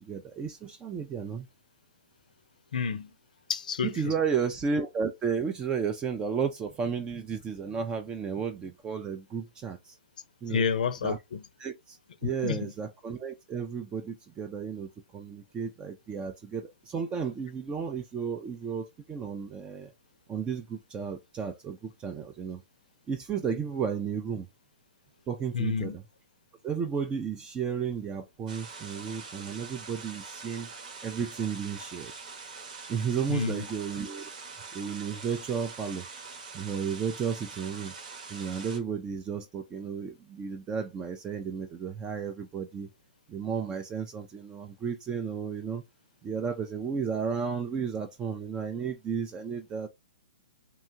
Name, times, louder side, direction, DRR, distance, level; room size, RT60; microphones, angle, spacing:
voice 1, 0.0-1.5 3.8-10.0 10.4-10.7 11.0-11.2 11.6-19.9 20.3-22.6 23.1-24.5 25.3-26.0 26.6-30.7 31.0-32.1 32.9-34.3 34.7-36.1 36.5-37.9 38.3-42.9 43.3-45.8 46.2-49.9, right 6 dB, 20° right, 0.4 m, -33 dB
voice 2, 2.7-3.1 3.5-4.1 10.5-11.4 12.2-12.7 25.5-26.0 33.3-33.6, left 6 dB, 70° left, 0.5 m, -30 dB
sound 1, 28.5-38.8, right 4 dB, 65° right, 1.1 m, -44 dB
2.9 x 2.2 x 2.6 m
hypercardioid pair, 130°, 5 cm